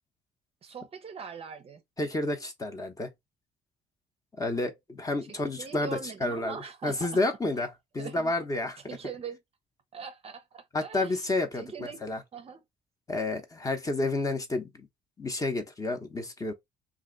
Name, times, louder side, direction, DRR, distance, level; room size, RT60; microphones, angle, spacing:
voice 1, 0.6-1.8 5.6-7.1 8.0-8.3 8.9-9.4 9.9-11.2 11.6-12.0 12.3-12.6, right 5 dB, 35° right, 0.6 m, -41 dB
voice 2, 2.0-3.1 4.4-6.6 6.8-8.8 10.7-12.2 13.1-14.9 15.2-16.5, left 2 dB, 20° left, 0.8 m, -30 dB
2.8 x 2.5 x 3.7 m
cardioid pair, 110°, 17 cm